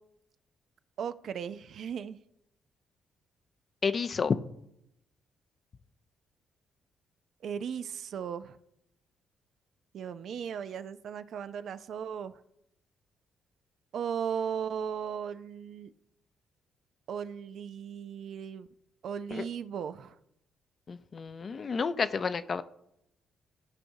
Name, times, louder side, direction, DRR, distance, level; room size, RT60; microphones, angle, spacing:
voice 1, 1.0-2.2 7.4-8.6 9.9-12.4 13.9-15.9 17.1-18.7 19.0-20.1, right 7 dB, 65° right, 13 dB, 0.4 m, -36 dB
voice 2, 3.8-4.4 19.3-19.4 20.9-22.6, left 5 dB, 40° left, 13 dB, 0.4 m, -30 dB
14.0 x 4.9 x 2.7 m, 0.80 s
cardioid pair, 90°, 0 cm